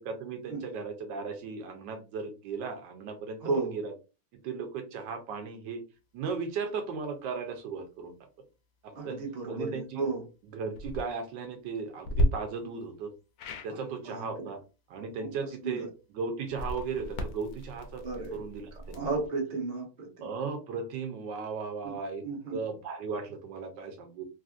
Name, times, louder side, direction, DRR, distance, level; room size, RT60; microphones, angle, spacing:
voice 1, 0.0-3.9 4.4-5.8 6.1-8.1 8.8-9.2 9.5-10.0 10.5-13.1 13.6-14.6 14.9-15.9 16.1-18.0 18.3-19.1 20.2-24.3, right 5 dB, 75° right, 6 dB, 1.2 m, -36 dB
voice 2, 3.4-3.7 8.9-10.2 13.8-14.5 15.2-15.9 18.0-18.5 18.7-20.3 21.8-21.9 22.2-22.6, right 3 dB, 45° right, 0 dB, 0.5 m, -34 dB
sound 1, 10.7-11.0 12.0-12.3 13.4-13.7 16.4-19.3, equal, 80° left, 0.8 m, -33 dB
3.3 x 2.5 x 2.4 m, 0.30 s
omnidirectional pair, 2.1 m